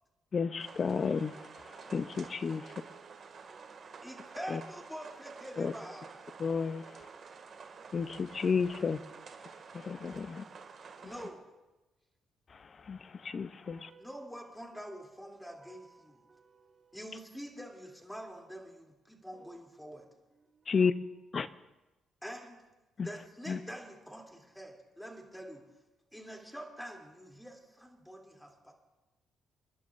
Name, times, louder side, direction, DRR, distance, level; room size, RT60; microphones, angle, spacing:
voice 1, 0.3-1.3 1.9-2.6 4.5-4.6 5.6-5.7 6.4-6.8 7.9-9.0 9.7-10.4 12.9-13.9 20.7-20.9 21.3-21.5 23.0-23.1 23.5-23.6, left 5 dB, 40° left, 14 dB, 0.6 m, -31 dB
sound 1, 0.6-11.3, right 5 dB, 55° right, 2.0 m, -50 dB
voice 2, 2.6-4.2 6.7-7.3 13.6-14.1 15.5-17.0 19.3-20.0 20.3-20.8, right 5 dB, 30° right, 1 dB, 1.8 m, -61 dB
voice 3, 4.0-6.2 11.0-11.4 14.0-16.2 16.9-20.1 22.2-22.6 23.0-25.6 26.1-28.7, equal, 5° left, 1 dB, 2.8 m, -46 dB
29.5 x 11.5 x 2.5 m, 1.1 s
cardioid pair, 90°, 0 cm